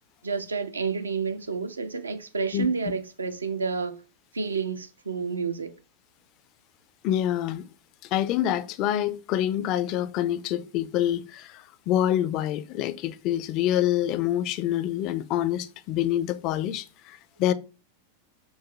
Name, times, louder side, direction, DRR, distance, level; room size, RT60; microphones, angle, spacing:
voice 1, 0.2-4.0 4.3-5.7, right 5 dB, 75° right, 0.5 m, -29 dB
voice 2, 7.0-7.7 8.1-17.5, left 11 dB, 40° left, 0.3 m, -26 dB
4.6 x 2.1 x 3.9 m
figure-of-eight pair, 90°, 0 cm